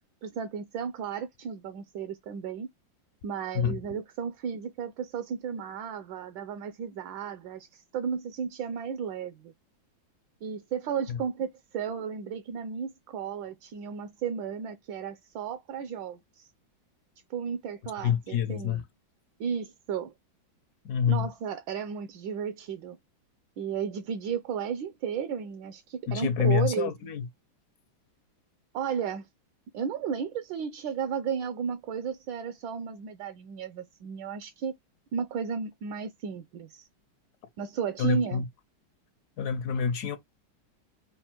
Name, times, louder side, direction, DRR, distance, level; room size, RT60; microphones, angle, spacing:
voice 1, 0.2-2.7 3.2-9.5 10.4-16.5 17.3-18.8 19.4-20.1 21.1-23.0 23.6-26.9 28.7-29.3 29.7-34.7 35.1-36.9 37.6-38.4, right 7 dB, 75° right, 1.3 m, -34 dB
voice 2, 18.0-18.8 20.8-21.3 26.1-27.3 38.0-38.5 39.4-40.2, left 7 dB, 70° left, 1.0 m, -27 dB
5.4 x 2.0 x 4.4 m
omnidirectional pair, 2.1 m